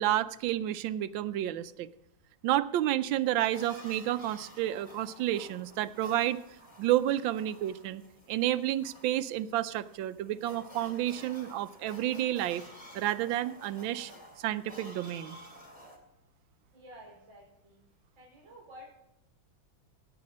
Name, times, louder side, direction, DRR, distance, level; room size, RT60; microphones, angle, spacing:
voice 1, 0.0-1.9 2.4-6.4 6.8-8.0 8.3-12.6 12.9-14.1 14.4-15.4, right 13 dB, 80° right, 13 dB, 1.3 m, -30 dB
sound 1, 3.2-16.0, equal, 15° left, 2.1 m, -52 dB
voice 2, 16.7-17.8 18.2-18.9, equal, 35° right, -5 dB, 5.2 m, -51 dB
17.5 x 8.1 x 4.2 m, 0.87 s
omnidirectional pair, 2.2 m